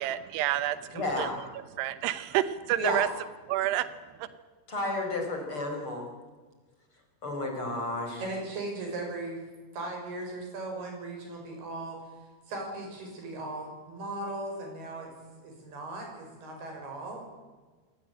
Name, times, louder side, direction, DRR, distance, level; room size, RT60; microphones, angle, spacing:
voice 1, 0.0-1.3 1.8-3.1 3.5-3.9 4.2-4.3, right 13 dB, 90° right, 13 dB, 3.0 m, -29 dB
voice 2, 0.9-1.4 2.8-3.1 4.7-6.1 7.2-8.2, left 2 dB, 30° left, 2 dB, 5.1 m, -31 dB
voice 3, 8.2-9.4 9.7-12.0 12.5-15.1 15.4-17.3, right 2 dB, 70° right, 2 dB, 7.9 m, -38 dB
24.0 x 18.5 x 8.8 m, 1.4 s
omnidirectional pair, 4.6 m